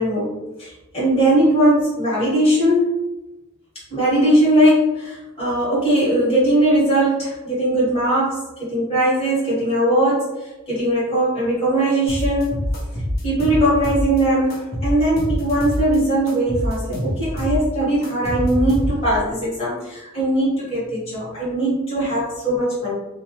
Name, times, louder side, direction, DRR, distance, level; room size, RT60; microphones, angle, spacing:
voice 1, 0.0-3.0 3.9-12.5 13.2-22.9, right 1 dB, 25° left, -10 dB, 1.3 m, -20 dB
sound 1, 12.1-14.2 14.5-16.0 16.3-19.2, equal, 45° left, 0.8 m, -25 dB
2.5 x 2.2 x 2.9 m, 1.0 s
head